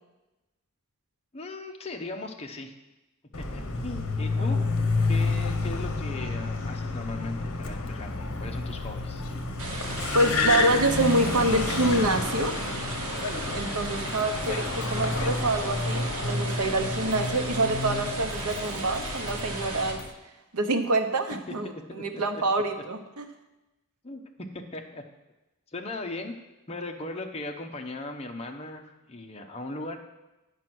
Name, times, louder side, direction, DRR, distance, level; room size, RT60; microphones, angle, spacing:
voice 1, 1.3-2.7 3.4-4.6 5.1-9.2 14.0-14.6 21.5-21.6 21.9-22.4 24.0-25.0 25.7-26.4 26.7-30.0, left 2 dB, 30° left, 2 dB, 0.8 m, -38 dB
Car, 3.3-20.1, left 3 dB, 65° left, 1.0 m, -30 dB
sound 1, 9.6-19.9, right 3 dB, 70° right, 1.7 m, -36 dB
voice 2, 10.1-12.5 13.5-20.0 20.5-23.2, right 2 dB, 85° right, 6 dB, 0.9 m, -26 dB
9.5 x 5.3 x 6.0 m, 1.0 s
head